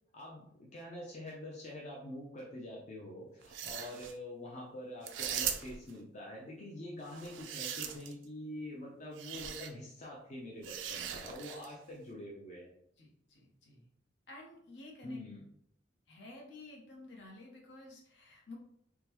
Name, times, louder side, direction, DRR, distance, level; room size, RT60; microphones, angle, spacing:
voice 1, 0.1-12.8 15.0-15.5, left 1 dB, 40° left, -3 dB, 0.6 m, -45 dB
sound 1, 3.4-4.1 5.0-5.9 7.1-8.2 9.2-9.7 10.6-11.7, right 9 dB, 70° right, 0.3 m, -39 dB
voice 2, 13.0-13.9 14.3-15.2 16.1-18.6, left 2 dB, 65° left, -1 dB, 0.8 m, -52 dB
3.6 x 2.2 x 2.9 m, 0.71 s
head